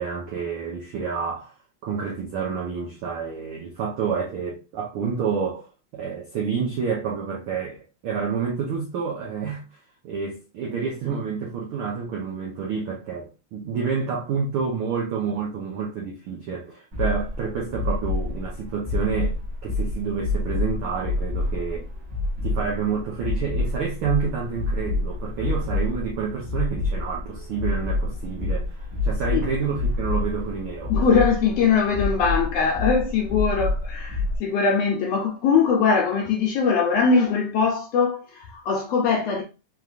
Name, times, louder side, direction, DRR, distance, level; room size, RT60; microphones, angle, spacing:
voice 1, 0.0-1.5 1.8-9.6 10.0-21.9 22.4-30.9, right 6 dB, 85° right, 1.1 m, -29 dB
sound 1, 16.9-34.4, left 2 dB, 50° right, 1.1 m, -28 dB
voice 2, 30.9-39.4, left 5 dB, 70° left, 1.6 m, -21 dB
5.2 x 3.0 x 2.4 m
omnidirectional pair, 3.5 m